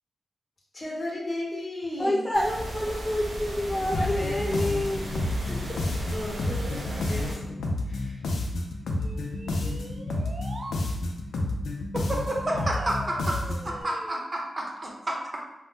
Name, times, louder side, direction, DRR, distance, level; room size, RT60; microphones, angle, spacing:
voice 1, 0.7-2.3 3.7-5.0 5.6-5.8 6.1-8.2, left 1 dB, 50° left, -4 dB, 0.9 m, -36 dB
voice 2, 2.0-5.2, left 1 dB, 20° left, -4 dB, 0.4 m, -28 dB
sound 1, 2.3-7.3, right 1 dB, 90° right, 0.8 m, -35 dB
sound 2, 3.9-13.8, left 2 dB, 90° left, 0.4 m, -30 dB
sound 3, 9.0-10.8 12.2-14.2, right 2 dB, 60° right, 0.3 m, -41 dB
voice 3, 11.9-13.4 13.6-15.4, right 1 dB, 40° right, -1 dB, 0.7 m, -30 dB
2.6 x 2.1 x 3.4 m, 0.95 s
cardioid pair, 50°, 0 cm